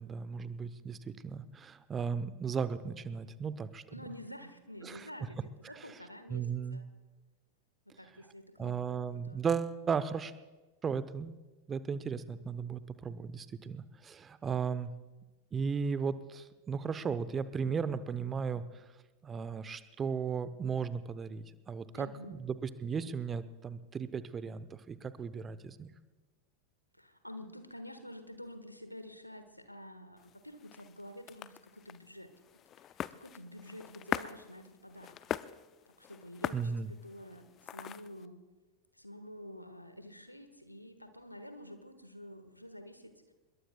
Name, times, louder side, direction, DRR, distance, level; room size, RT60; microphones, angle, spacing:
voice 1, 0.0-3.8 4.8-5.1 5.7-5.9 6.3-6.8 8.6-10.3 10.8-11.4 11.7-14.9 15.5-18.8 19.2-25.9 36.5-36.9, right 6 dB, 20° right, 14 dB, 0.8 m, -36 dB
voice 2, 3.9-6.8 7.8-9.4 21.9-22.3 27.0-32.3 32.8-32.9 33.1-35.2 35.9-38.4 38.9-43.3, equal, 90° left, 9 dB, 1.5 m, -49 dB
sound 1, 30.2-38.3, left 11 dB, 30° left, 0.4 m, -42 dB
25.5 x 21.5 x 2.3 m, 1.2 s
figure-of-eight pair, 90°, 0 cm